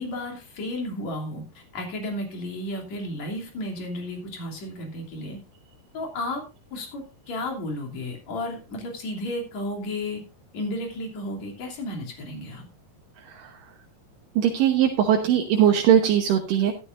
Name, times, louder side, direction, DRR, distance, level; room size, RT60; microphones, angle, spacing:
voice 1, 0.0-1.4 1.7-5.4 5.9-6.4 6.7-10.2 10.5-12.6, left 1 dB, 55° left, 1 dB, 4.2 m, -33 dB
voice 2, 14.4-16.7, right 9 dB, 75° right, 2 dB, 2.8 m, -20 dB
14.0 x 12.5 x 2.6 m, 0.30 s
omnidirectional pair, 3.9 m